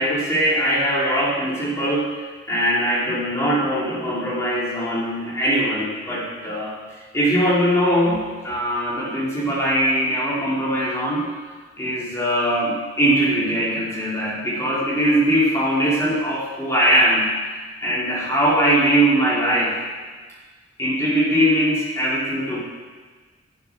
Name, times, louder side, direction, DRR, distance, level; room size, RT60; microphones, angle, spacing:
voice 1, 0.0-2.2 2.5-6.8 7.1-11.3 11.8-17.3 17.8-19.8 20.8-22.6, equal, 15° left, -6 dB, 2.7 m, -21 dB
11.0 x 7.1 x 6.3 m, 1.4 s
head